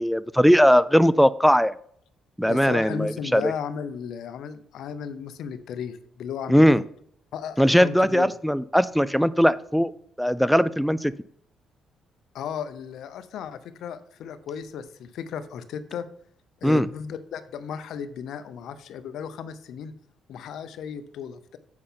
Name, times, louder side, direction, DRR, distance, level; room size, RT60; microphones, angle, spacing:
voice 1, 0.0-1.7 2.4-3.5 6.5-6.8 7.6-9.9 10.2-11.1 16.6-16.9, equal, ahead, 15 dB, 0.4 m, -19 dB
voice 2, 2.5-6.8 7.3-8.3 12.3-16.1 16.6-19.9 20.3-21.6, left 7 dB, 75° left, 12 dB, 0.7 m, -35 dB
7.7 x 5.7 x 5.6 m, 0.64 s
cardioid pair, 90°, 0 cm